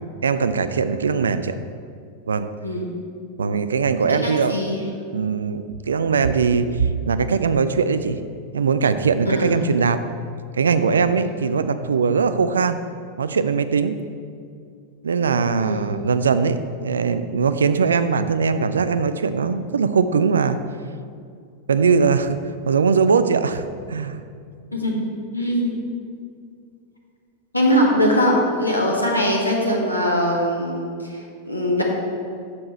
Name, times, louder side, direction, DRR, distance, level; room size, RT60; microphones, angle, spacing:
voice 1, 0.2-1.6 2.3-2.5 3.4-4.5 5.1-8.2 8.5-10.0 10.6-12.8 13.2-14.0 15.0-20.6 21.7-22.4 22.7-24.2, right 5 dB, 70° right, 11 dB, 0.4 m, -20 dB
voice 2, 4.1-4.8 9.2-9.5 11.2-11.3 15.5-15.8 24.7-25.0 25.3-25.8 27.5-30.9 31.1-31.8, equal, 85° left, -1 dB, 1.2 m, -21 dB
8.5 x 6.6 x 4.3 m, 2.3 s
figure-of-eight pair, 90°, 0 cm